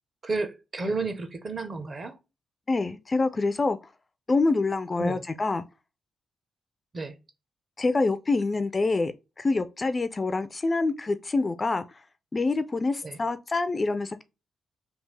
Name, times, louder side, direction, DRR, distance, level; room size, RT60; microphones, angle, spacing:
voice 1, 0.2-2.2 5.0-5.2 6.9-7.1 13.0-13.2, right 3 dB, 35° right, 0.7 m, -31 dB
voice 2, 2.7-3.8 4.3-5.6 7.8-11.8 12.3-14.2, left 3 dB, 30° left, 0.3 m, -26 dB
3.4 x 2.4 x 3.2 m
cardioid pair, 95°, 0 cm